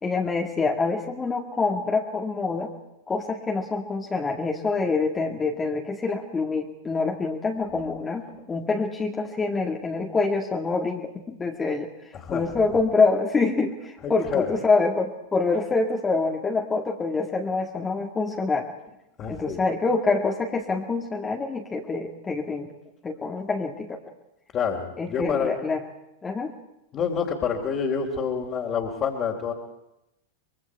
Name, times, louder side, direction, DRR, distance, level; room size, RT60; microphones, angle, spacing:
voice 1, 0.0-2.7 3.1-11.9 12.3-18.7 19.3-22.7 23.0-24.0 25.0-25.8 26.2-26.5, left 3 dB, 20° left, 1 dB, 2.0 m, -26 dB
voice 2, 12.1-12.5 14.0-14.5 19.2-19.7 24.5-25.5 26.9-29.5, left 6 dB, 35° left, -2 dB, 3.2 m, -28 dB
25.0 x 22.0 x 4.7 m, 0.87 s
hypercardioid pair, 95°, 0 cm